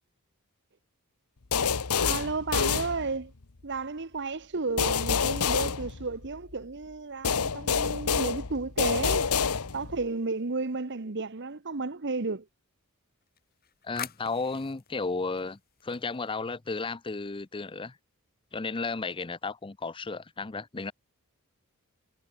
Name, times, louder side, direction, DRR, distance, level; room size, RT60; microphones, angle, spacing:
sound 1, 1.5-3.4 4.8-6.5 7.2-10.0, left 6 dB, 90° left, 1.2 m, -27 dB
voice 1, 2.0-3.3 3.6-9.3 9.7-12.5, right 3 dB, 50° right, 1.0 m, -33 dB
sound 2, 9.2-10.9 13.2-16.5, left 9 dB, 45° left, 6.1 m, -47 dB
voice 2, 13.8-18.0 18.5-20.9, left 3 dB, 25° left, 0.6 m, -34 dB
head